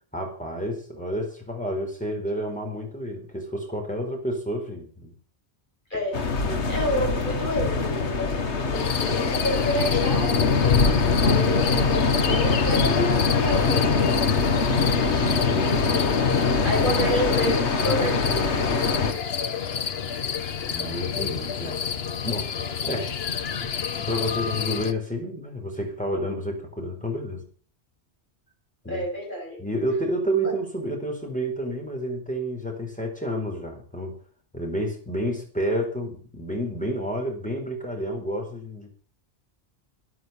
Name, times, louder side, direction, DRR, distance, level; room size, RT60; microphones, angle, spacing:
voice 1, 0.1-5.1 6.3-6.7 15.1-16.0 20.7-21.8 22.2-23.2 23.6-23.7 24.1-27.4 28.8-29.1 29.6-34.2 34.5-38.9, equal, 5° left, 1 dB, 4.5 m, -30 dB
voice 2, 5.9-6.2 6.7-10.5 11.2-14.2 15.1-15.3 16.6-18.5 28.9-29.6, equal, 50° left, -1 dB, 7.0 m, -29 dB
sound 1, 6.1-19.1, left 4 dB, 85° left, 1.8 m, -23 dB
sound 2, 8.7-24.9, left 7 dB, 70° left, 1.2 m, -29 dB
12.5 x 11.0 x 7.1 m, 0.43 s
omnidirectional pair, 1.1 m